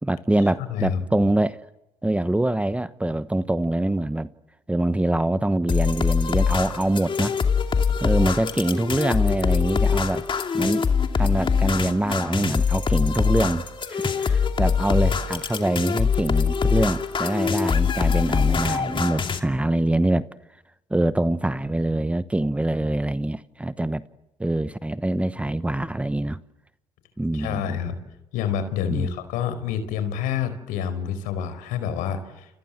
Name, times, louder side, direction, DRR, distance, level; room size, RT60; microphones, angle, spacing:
voice 1, 0.0-1.6 2.0-4.3 4.7-7.4 8.0-10.3 10.5-10.8 11.1-20.3 20.9-24.0 24.4-26.4 27.2-27.8 28.9-29.1, right 1 dB, 10° right, 1.0 m, -24 dB
voice 2, 0.7-1.0 27.3-27.9 28.3-32.6, left 8 dB, 80° left, 4.7 m, -28 dB
sound 1, 5.7-19.4, left 6 dB, 35° left, 2.6 m, -23 dB
29.5 x 26.0 x 7.7 m
supercardioid pair, 75°, 14 cm